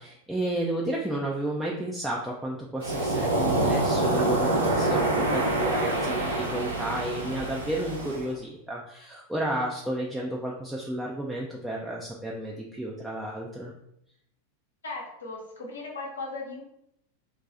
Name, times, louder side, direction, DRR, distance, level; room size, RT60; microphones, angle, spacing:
voice 1, 0.0-5.1 5.3-13.7, right 1 dB, 5° right, -3 dB, 0.4 m, -32 dB
Waves surf, 2.8-8.3, right 2 dB, 75° right, 0.7 m, -26 dB
voice 2, 14.8-16.6, left 3 dB, 70° left, -1 dB, 0.8 m, -37 dB
2.4 x 2.3 x 4.0 m, 0.76 s
figure-of-eight pair, 90°, 0 cm